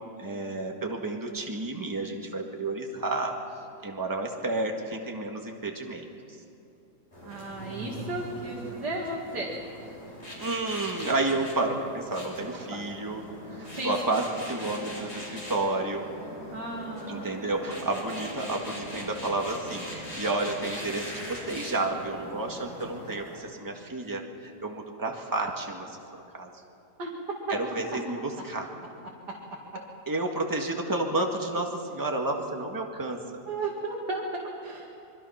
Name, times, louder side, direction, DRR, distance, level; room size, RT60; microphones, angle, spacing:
voice 1, 0.0-3.4 3.8-6.1 10.4-13.2 13.5-16.1 17.1-26.0 26.3-26.5 27.5-28.7 30.1-33.2, right 2 dB, 10° right, 1 dB, 1.8 m, -31 dB
sound 1, 7.1-23.4, equal, 40° left, 5.8 m, -41 dB
voice 2, 7.2-9.6 12.7-12.8 13.7-14.0 16.5-17.5 27.0-27.1 27.5-27.6 27.9-28.0 29.3-29.4 33.5-34.9, right 2 dB, 90° right, -4 dB, 2.9 m, -34 dB
26.0 x 23.5 x 5.9 m, 2.7 s
omnidirectional pair, 1.8 m